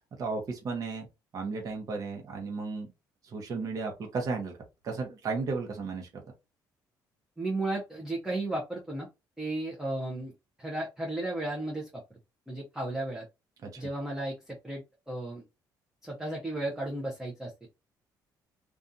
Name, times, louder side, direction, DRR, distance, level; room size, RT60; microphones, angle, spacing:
voice 1, 0.2-1.1 1.3-2.9 3.2-4.5 4.8-6.1 13.6-13.9, right 4 dB, 45° right, 2 dB, 0.8 m, -34 dB
voice 2, 7.4-9.1 9.4-10.3 10.6-12.0 12.5-13.2 13.8-15.4 16.0-17.7, right 2 dB, 5° right, -3 dB, 0.7 m, -34 dB
2.5 x 2.3 x 2.5 m, 0.25 s
cardioid pair, 125°, 8 cm